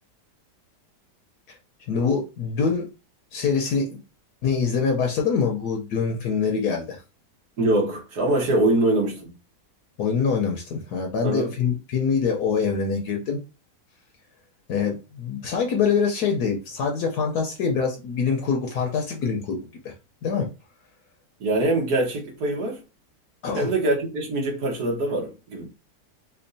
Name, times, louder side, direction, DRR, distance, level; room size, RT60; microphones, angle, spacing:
voice 1, 1.9-2.9 3.3-4.0 4.4-7.0 10.0-13.4 14.7-19.6 19.8-19.9 20.2-20.5 23.4-23.7, left 5 dB, 70° left, 1.2 m, -24 dB
voice 2, 7.6-9.3 11.2-11.5 21.4-22.8 23.6-25.7, right 2 dB, 65° right, 1.8 m, -23 dB
4.3 x 2.4 x 2.7 m
omnidirectional pair, 1.8 m